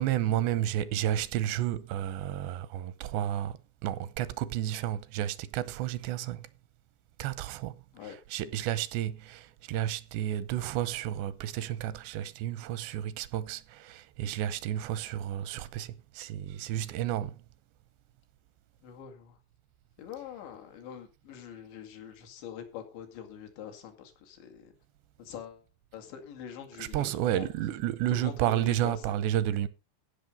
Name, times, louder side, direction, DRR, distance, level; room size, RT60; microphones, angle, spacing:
voice 1, 0.0-6.5 7.2-17.4 26.7-29.7, right 12 dB, 85° right, 2.9 m, -31 dB
voice 2, 18.8-19.4 20.0-24.7 25.2-25.6 25.9-27.5 28.1-29.2, left 9 dB, 85° left, 4.4 m, -44 dB
16.0 x 6.4 x 5.2 m
omnidirectional pair, 5.0 m